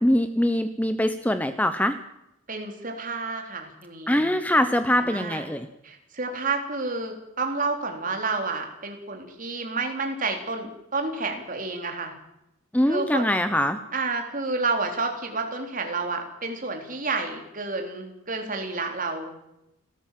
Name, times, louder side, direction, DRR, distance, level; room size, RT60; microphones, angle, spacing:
voice 1, 0.0-2.0 4.1-5.7 12.7-13.8, left 1 dB, 5° left, 10 dB, 0.9 m, -23 dB
voice 2, 2.5-4.3 4.9-5.5 5.8-12.1 12.9-13.3 13.9-19.3, right 3 dB, 40° right, 4 dB, 3.8 m, -30 dB
29.0 x 13.5 x 7.6 m, 0.88 s
head